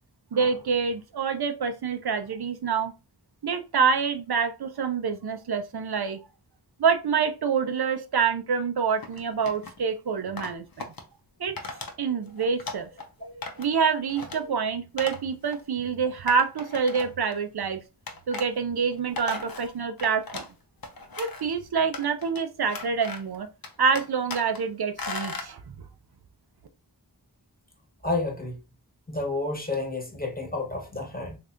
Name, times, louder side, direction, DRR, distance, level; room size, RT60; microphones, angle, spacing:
voice 1, 0.3-2.9 3.4-6.2 6.8-10.9 11.4-11.6 12.0-12.9 13.2-17.8 18.3-20.5 21.2-23.5 23.8-25.7, right 6 dB, 70° right, 0.5 m, -26 dB
sound 1, 9.0-9.8 10.4-11.0 11.6-11.9 12.3-13.1 13.4-13.8 14.1-14.4 15.0-15.2 15.5-15.6 16.3-17.3 18.1-18.5 18.9-20.5 20.8-21.5 21.9-22.4 22.7-23.4 23.6-24.6 25.0-25.5, left 3 dB, 60° left, 0.7 m, -37 dB
voice 2, 28.0-28.6 29.1-31.4, left 2 dB, 25° left, 1.0 m, -30 dB
3.5 x 3.2 x 2.5 m
wide cardioid pair, 55°, 39 cm